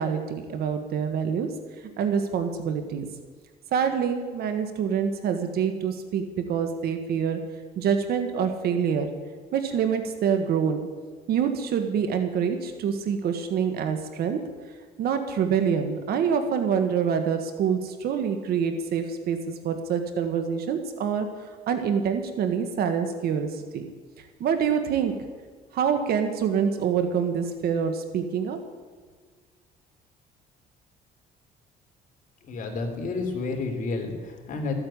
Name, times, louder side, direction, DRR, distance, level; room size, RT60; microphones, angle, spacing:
voice 1, 0.0-1.5 2.0-3.1 3.7-7.4 7.7-9.1 9.5-10.9 11.3-14.5 15.0-23.9 24.4-25.2 25.7-28.6, right 7 dB, 65° right, 7 dB, 1.5 m, -26 dB
voice 2, 32.5-34.8, left 3 dB, 50° left, 3 dB, 3.2 m, -30 dB
14.5 x 8.8 x 8.6 m, 1.5 s
cardioid pair, 110°, 17 cm